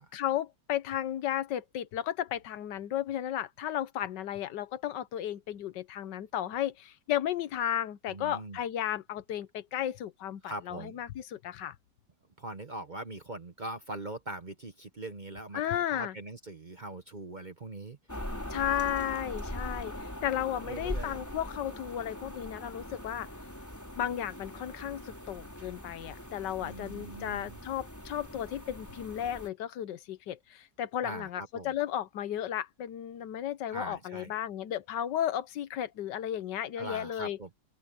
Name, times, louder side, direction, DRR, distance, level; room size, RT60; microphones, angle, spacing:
voice 1, 0.1-11.7 15.5-16.1 18.5-19.9 20.2-23.3 23.9-37.4, left 11 dB, 80° left, 1.5 m, -34 dB
voice 2, 8.1-8.6 10.4-11.0 12.4-18.4 20.6-21.2 26.6-27.6 31.0-31.7 33.7-34.4 36.7-37.5, right 2 dB, 35° right, 0.8 m, -42 dB
sound 1, 18.1-29.5, left 1 dB, 10° left, 4.6 m, -42 dB
open air
omnidirectional pair, 1.9 m